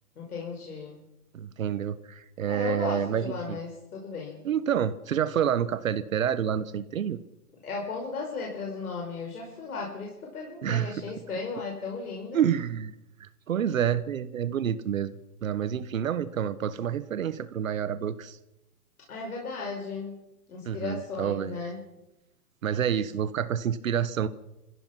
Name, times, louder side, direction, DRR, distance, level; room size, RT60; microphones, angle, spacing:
voice 1, 0.2-1.0 2.5-4.4 7.6-12.4 19.1-20.2 20.5-21.8, left 4 dB, 75° left, 0 dB, 5.6 m, -35 dB
voice 2, 1.3-3.6 4.4-7.2 10.6-10.9 12.3-12.9 13.2-18.4 20.6-21.6 22.6-24.3, right 9 dB, 60° right, 14 dB, 1.2 m, -28 dB
28.0 x 16.0 x 6.1 m, 0.92 s
hypercardioid pair, 165°, 45 cm